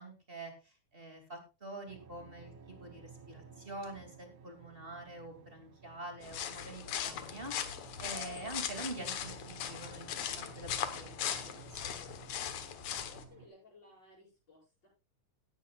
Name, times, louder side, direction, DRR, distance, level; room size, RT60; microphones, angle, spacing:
voice 1, 0.0-2.5 2.8-12.1, right 2 dB, 20° right, 5 dB, 2.5 m, -46 dB
sound 1, 1.9-13.5, right 6 dB, 90° right, 3.2 m, -55 dB
sound 2, 6.2-13.2, left 9 dB, 75° left, 2.6 m, -39 dB
voice 2, 13.0-14.9, left 2 dB, 35° left, -9 dB, 8.6 m, -59 dB
18.0 x 11.5 x 2.4 m, 0.29 s
omnidirectional pair, 3.4 m